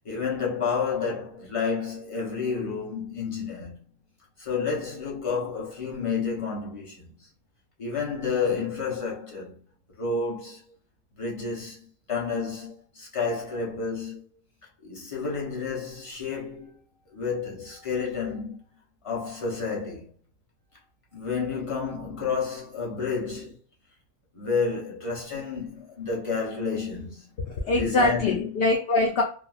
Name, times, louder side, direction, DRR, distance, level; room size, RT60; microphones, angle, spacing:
voice 1, 0.0-3.8 4.4-7.1 7.8-9.6 10.0-10.6 11.2-14.2 14.8-16.8 17.1-18.6 19.0-20.1 21.1-23.6 24.3-27.3 27.8-28.5, left 5 dB, 25° left, 1.0 m, -30 dB
voice 2, 27.5-29.2, left 2 dB, 60° left, 0.7 m, -23 dB
3.4 x 2.1 x 2.4 m
omnidirectional pair, 1.4 m